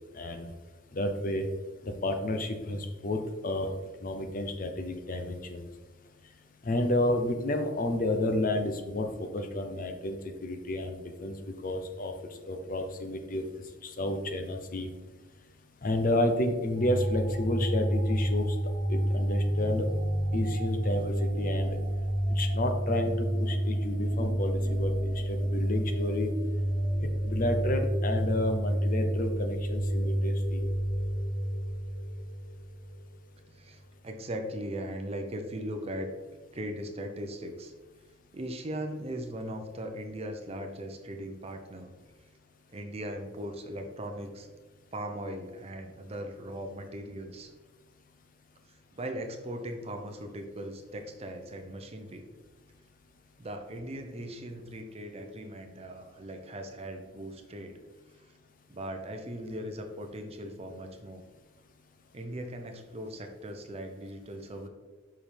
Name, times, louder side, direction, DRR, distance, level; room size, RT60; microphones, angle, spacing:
voice 1, 0.1-0.5 0.9-1.5 1.8-3.7 4.0-5.7 6.6-11.4 11.6-12.1 12.4-13.4 13.8-14.9 15.8-18.6 18.9-19.9 20.3-21.8 22.3-26.3 27.0-30.6, left 1 dB, 45° left, 6 dB, 0.6 m, -31 dB
sound 1, 16.7-33.1, equal, 85° right, 1.0 m, -29 dB
voice 2, 33.5-36.1 36.5-37.7 38.3-41.9 42.7-44.5 44.9-47.5 48.7-52.2 53.4-57.8 58.7-61.2 62.1-64.7, right 1 dB, 30° right, 5 dB, 0.7 m, -39 dB
5.8 x 5.0 x 3.4 m, 1.3 s
head